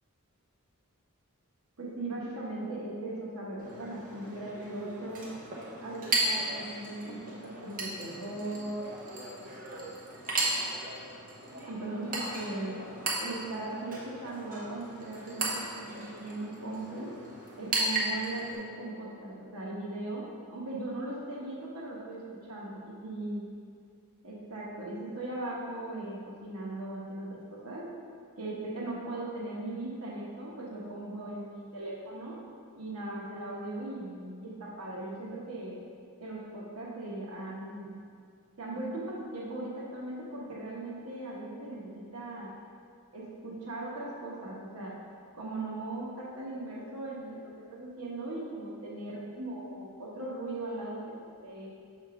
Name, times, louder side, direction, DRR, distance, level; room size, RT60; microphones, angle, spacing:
voice 1, 1.8-5.4 5.8-8.8 9.2-9.9 10.4-10.7 11.7-12.8 13.2-17.1 17.6-23.4 24.2-27.9 28.4-32.4 32.7-35.8 36.2-38.0 38.6-42.5 43.1-44.9 45.3-51.0 51.4-51.7, right 2 dB, 80° right, -4 dB, 1.1 m, -39 dB
Chink clink, 3.6-18.6, right 2 dB, 40° right, 1.0 m, -36 dB
6.6 x 3.6 x 5.0 m, 2.2 s
head